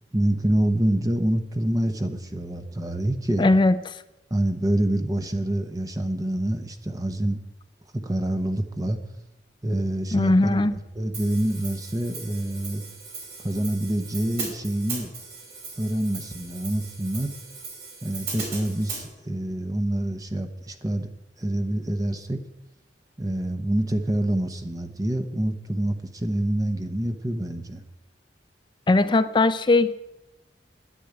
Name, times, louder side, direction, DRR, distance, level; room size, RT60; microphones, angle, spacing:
voice 1, 0.1-3.4 4.3-7.4 8.0-9.0 9.6-12.8 13.4-15.1 15.8-17.3 18.0-21.1 21.4-22.4 23.2-27.8, right 1 dB, 20° right, 7 dB, 0.9 m, -26 dB
voice 2, 3.4-3.8 10.1-10.7 28.9-29.9, left 2 dB, 25° left, 12 dB, 0.5 m, -19 dB
Hi-hat, 11.1-19.0, right 4 dB, 65° right, 5.4 m, -38 dB
10.0 x 10.0 x 8.6 m, 0.96 s
head